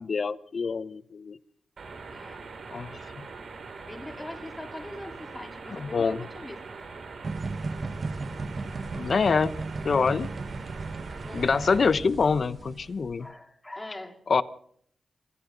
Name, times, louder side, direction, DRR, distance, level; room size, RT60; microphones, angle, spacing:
voice 1, 0.0-1.4 2.7-3.3 5.7-6.3 9.0-9.5 9.8-10.3 11.3-13.3 14.3-14.4, left 5 dB, 60° left, 14 dB, 0.9 m, -26 dB
sound 1, 1.8-11.9, right 4 dB, 70° right, 6.2 m, -42 dB
voice 2, 2.1-2.5 3.8-6.6 11.2-11.5 13.2-14.2, left 1 dB, 20° left, 3 dB, 4.1 m, -42 dB
sound 2, 7.2-13.1, right 3 dB, 50° right, 1.5 m, -35 dB
26.5 x 26.5 x 4.0 m, 0.66 s
cardioid pair, 75°, 0 cm